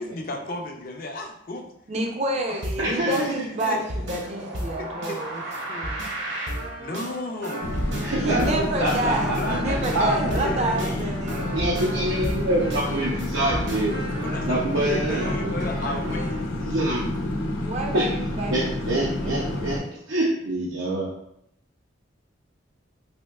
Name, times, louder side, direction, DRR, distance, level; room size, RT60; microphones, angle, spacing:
voice 1, 0.0-1.7 2.5-3.8 4.1-4.2 5.1-5.4 6.8-7.7 8.3-11.1 13.9-16.9 17.6-17.7, left 2 dB, 45° left, 2 dB, 0.5 m, -34 dB
voice 2, 1.9-6.0 8.1-11.6 17.6-19.5 19.8-20.0, right 2 dB, 35° right, 2 dB, 0.4 m, -29 dB
sound 1, 2.6-16.4, right 1 dB, 65° right, 0.9 m, -34 dB
voice 3, 2.8-3.3 8.0-10.4 10.8-10.9 11.5-13.9 14.5-15.9 16.7-17.0 17.9-18.0 18.5-19.8 20.1-21.1, right 1 dB, 80° right, -4 dB, 0.6 m, -26 dB
sound 2, 7.6-19.8, left 1 dB, 85° left, 0.7 m, -29 dB
4.2 x 2.7 x 2.2 m, 0.75 s
head